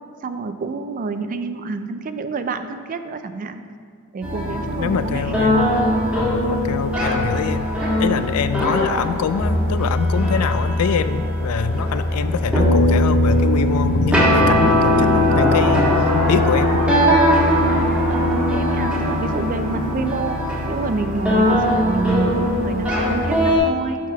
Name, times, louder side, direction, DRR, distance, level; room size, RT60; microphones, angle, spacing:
voice 1, 0.2-3.6 4.1-5.3 17.6-20.4 20.7-24.0, right 4 dB, 40° right, 9 dB, 0.3 m, -27 dB
sound 1, 4.2-23.6, left 1 dB, 5° right, 1.6 m, -19 dB
voice 2, 4.8-5.7 6.1-7.7 8.0-16.9, left 7 dB, 80° left, 12 dB, 0.3 m, -25 dB
Brass instrument, 11.3-15.6, left 4 dB, 35° left, 1.3 m, -38 dB
7.4 x 3.7 x 5.7 m, 2.1 s
head